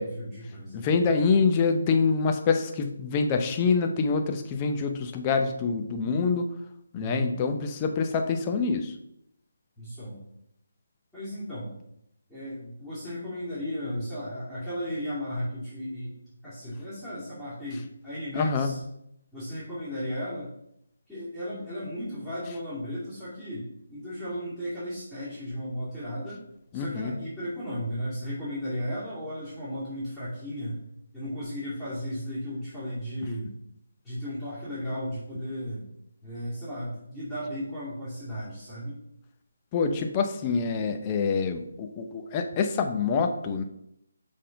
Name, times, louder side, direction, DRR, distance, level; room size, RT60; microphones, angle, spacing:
voice 1, 0.0-0.9 7.0-7.3 9.8-10.2 11.1-11.7 12.3-16.2 16.4-18.8 19.3-20.5 21.1-26.4 26.7-30.8 31.1-33.5 34.0-35.8 36.2-38.9, equal, ahead, -16 dB, 2.5 m, -35 dB
voice 2, 0.7-6.5 6.9-8.9 18.4-18.7 26.7-27.1 39.7-43.6, left 5 dB, 20° left, 5 dB, 0.7 m, -26 dB
6.7 x 3.7 x 5.1 m, 0.77 s
figure-of-eight pair, 160°, 0 cm